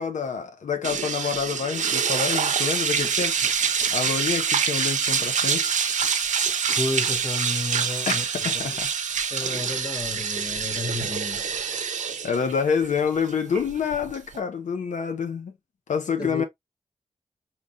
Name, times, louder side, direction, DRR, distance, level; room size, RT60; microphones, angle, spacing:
voice 1, 0.0-3.4 3.9-5.7 8.1-8.9 9.4-9.5 12.2-15.6 15.9-16.4, left 6 dB, 85° left, 0.7 m, -27 dB
sound 1, 0.8-14.4, right 6 dB, 80° right, 0.5 m, -26 dB
voice 2, 6.8-8.8 9.3-11.5 16.2-16.4, left 2 dB, 35° left, 0.6 m, -32 dB
3.9 x 3.0 x 2.5 m
cardioid pair, 45°, 12 cm